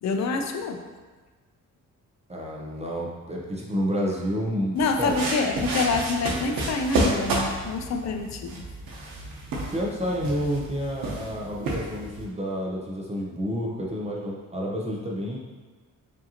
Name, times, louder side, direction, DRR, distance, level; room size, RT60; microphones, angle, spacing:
voice 1, 0.0-0.8 4.7-8.7, left 4 dB, 55° left, 5 dB, 0.5 m, -27 dB
voice 2, 2.3-5.3 6.3-6.4 9.7-15.4, equal, 20° right, -3 dB, 0.6 m, -29 dB
sound 1, 4.8-12.2, right 2 dB, 85° right, 0.9 m, -30 dB
4.9 x 2.7 x 2.8 m, 1.3 s
cardioid pair, 120°, 33 cm